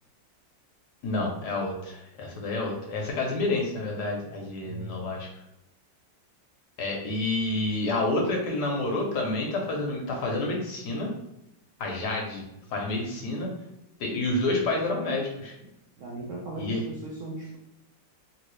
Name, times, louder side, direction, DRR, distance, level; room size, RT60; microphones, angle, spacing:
voice 1, 1.0-5.3 6.8-11.1 11.8-12.4 12.7-13.5 14.0-15.5 16.6-16.8, left 2 dB, 70° left, 0 dB, 1.1 m, -29 dB
voice 2, 4.6-5.0 16.0-17.6, right 2 dB, 75° right, -3 dB, 0.7 m, -38 dB
3.0 x 2.9 x 3.1 m, 0.86 s
omnidirectional pair, 2.1 m